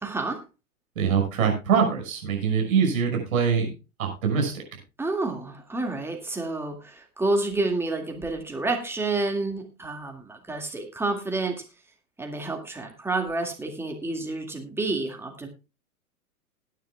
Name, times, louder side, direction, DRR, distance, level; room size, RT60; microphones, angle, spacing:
voice 1, 0.0-0.4 5.0-11.6 12.2-15.5, right 2 dB, 5° right, 2 dB, 2.1 m, -29 dB
voice 2, 1.0-3.7 4.0-4.6, right 6 dB, 65° right, 2 dB, 5.9 m, -23 dB
20.0 x 9.4 x 2.3 m, 0.28 s
figure-of-eight pair, 110°, 45 cm